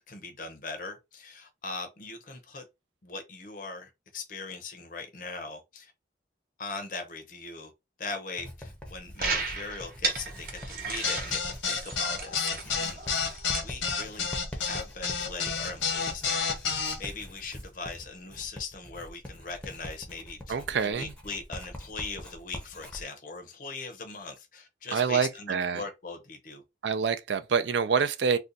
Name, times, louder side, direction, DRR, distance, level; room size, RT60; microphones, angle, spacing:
voice 1, 0.1-2.6 3.0-5.9 6.6-7.7 8.0-13.3 13.6-26.6, left 4 dB, 45° left, 0.6 m, -40 dB
Writing, 8.4-23.0, equal, 5° left, 0.6 m, -44 dB
sound 1, 9.2-13.6, right 4 dB, 50° right, 0.9 m, -34 dB
sound 2, 11.0-17.0, left 6 dB, 85° left, 0.8 m, -29 dB
voice 2, 20.5-21.1 24.9-25.8 26.8-28.4, right 6 dB, 70° right, 0.4 m, -26 dB
2.6 x 2.2 x 3.8 m
head